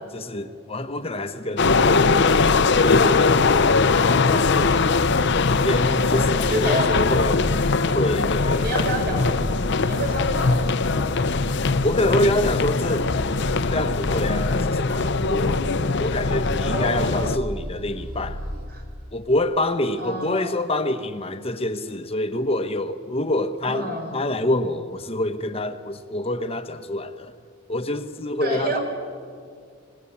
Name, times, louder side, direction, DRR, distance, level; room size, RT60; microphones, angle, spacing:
voice 1, 0.1-2.5 2.8-4.9 5.6-7.4 7.9-8.8 11.8-13.1 13.7-15.6 16.0-18.4 19.1-27.3 27.7-28.8, left 1 dB, 30° left, 0.9 m, -26 dB
sound 1, 1.6-17.4, left 4 dB, 60° left, 0.7 m, -21 dB
sound 2, 4.4-18.7, equal, 65° right, 3.3 m, -33 dB
voice 2, 6.4-6.9 8.6-9.4 9.8-10.8 16.6-17.4 18.7-18.8 20.0-20.5 23.7-24.2 28.4-28.8, right 1 dB, 50° right, 5.3 m, -29 dB
26.0 x 19.5 x 8.5 m
head